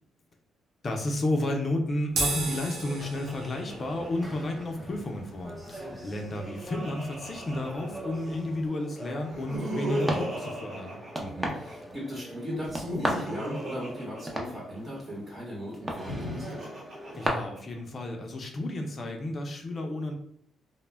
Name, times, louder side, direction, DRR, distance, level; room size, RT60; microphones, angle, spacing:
voice 1, 0.8-11.0 17.2-20.1, left 1 dB, 40° left, 3 dB, 0.5 m, -32 dB
Laughter, 2.1-4.6 6.0-8.3 9.2-11.7 12.6-15.0 15.8-17.8, right 1 dB, 60° right, 1.3 m, -37 dB
sound 1, 2.1-8.7, right 3 dB, 80° right, 0.6 m, -37 dB
sound 2, 3.7-17.3, right 1 dB, 10° right, 0.6 m, -39 dB
voice 2, 5.6-6.0 11.2-16.6, equal, 30° right, -5 dB, 1.0 m, -38 dB
2.1 x 2.1 x 3.3 m, 0.69 s
cardioid pair, 90°, 0 cm